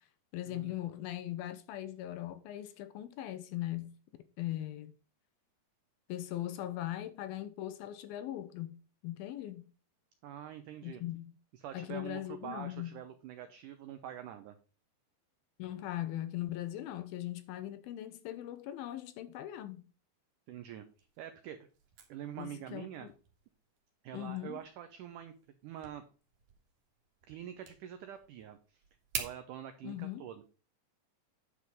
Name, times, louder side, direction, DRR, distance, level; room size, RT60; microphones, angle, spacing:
voice 1, 0.3-3.9 4.4-4.9 6.1-9.7 10.8-11.3 11.7-12.9 15.6-19.8 22.4-23.1 24.1-24.6 29.8-30.2, left 14 dB, 75° left, 2.4 m, -40 dB
voice 2, 10.2-11.0 11.5-14.6 20.5-20.8 21.2-21.6 22.1-23.1 24.0-25.3 25.6-26.0 27.3-28.8 29.2-30.4, right 10 dB, 85° right, 1.8 m, -45 dB
sound 1, 20.7-29.4, right 7 dB, 65° right, 3.0 m, -49 dB
10.0 x 4.9 x 5.3 m
omnidirectional pair, 4.6 m